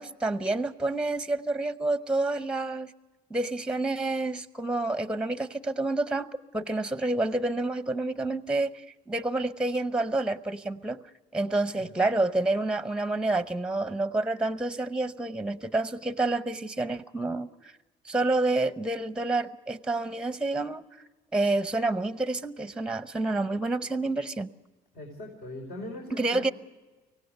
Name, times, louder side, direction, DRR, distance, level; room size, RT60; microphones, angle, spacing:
voice 1, 0.0-2.9 3.3-11.0 11.3-17.5 18.1-20.9 21.3-24.5 26.1-26.5, right 2 dB, 5° right, 12 dB, 0.7 m, -28 dB
voice 2, 24.9-26.5, left 1 dB, 70° left, 0 dB, 4.8 m, -40 dB
24.5 x 17.5 x 6.6 m, 1.2 s
cardioid pair, 110°, 17 cm